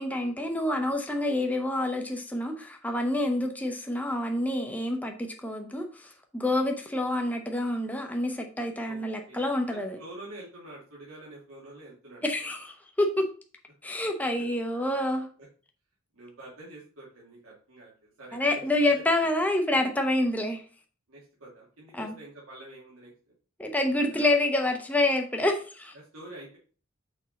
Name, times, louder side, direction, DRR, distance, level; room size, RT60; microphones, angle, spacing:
voice 1, 0.0-10.0 12.2-13.3 13.8-15.3 18.3-20.6 21.9-22.1 23.6-25.9, left 1 dB, 10° left, 0.7 m, -27 dB
voice 2, 8.8-12.5 14.4-14.5 14.7-14.8 15.4-15.5 16.1-19.3 21.1-23.1 24.0-24.3 25.9-26.6, right 1 dB, 85° right, 2.4 m, -47 dB
6.3 x 4.4 x 4.1 m
head